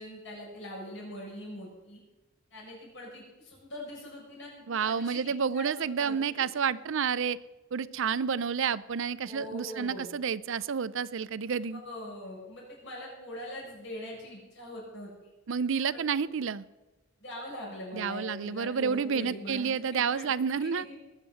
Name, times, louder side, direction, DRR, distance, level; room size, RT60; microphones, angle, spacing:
voice 1, 0.0-2.0 2.5-6.4 9.2-10.1 11.6-15.3 15.9-16.1 17.2-21.0, left 1 dB, 60° left, -3 dB, 7.2 m, -42 dB
voice 2, 4.7-7.4 7.7-11.8 15.5-16.6 17.9-20.8, right 6 dB, 65° right, 17 dB, 0.5 m, -30 dB
20.5 x 7.4 x 7.7 m, 1.1 s
head